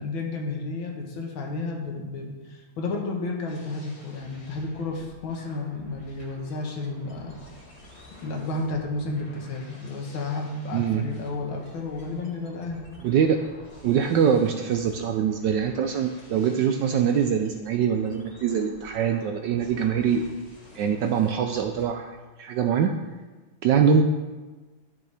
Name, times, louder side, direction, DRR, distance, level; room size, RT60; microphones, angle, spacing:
voice 1, 0.0-7.4 8.2-12.8 23.8-24.0, left 3 dB, 70° left, 1 dB, 2.0 m, -32 dB
sound 1, 3.5-21.9, left 1 dB, 50° left, 2.6 m, -50 dB
voice 2, 10.7-11.0 13.0-13.4 13.8-20.3 20.7-22.9 23.6-24.0, right 7 dB, 75° right, 6 dB, 1.0 m, -23 dB
12.0 x 6.9 x 3.4 m, 1.2 s
omnidirectional pair, 2.4 m